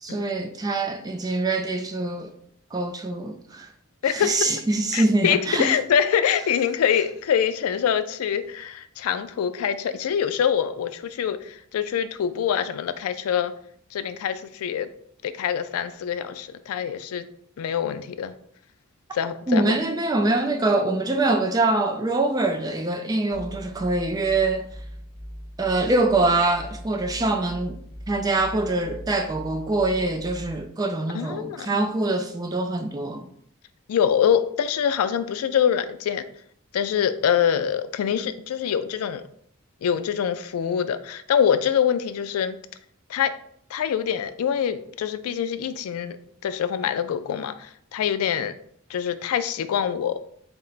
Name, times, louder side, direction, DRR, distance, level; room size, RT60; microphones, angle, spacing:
voice 1, 0.0-2.3 2.7-3.7 4.1-5.7 19.5-24.7 25.6-27.8 28.1-33.2, right 2 dB, 15° right, 0.3 m, -24 dB
voice 2, 4.0-4.3 4.9-13.5 13.9-14.9 15.2-17.3 17.6-18.3 19.1-19.8 31.1-31.8 33.9-36.3 36.7-39.2 39.8-42.6 43.1-43.3 43.7-46.2 46.4-48.5 48.9-50.2, left 8 dB, 85° left, 0.3 m, -24 dB
sound 1, 23.3-30.7, equal, 25° left, 0.8 m, -40 dB
4.2 x 2.1 x 3.9 m
head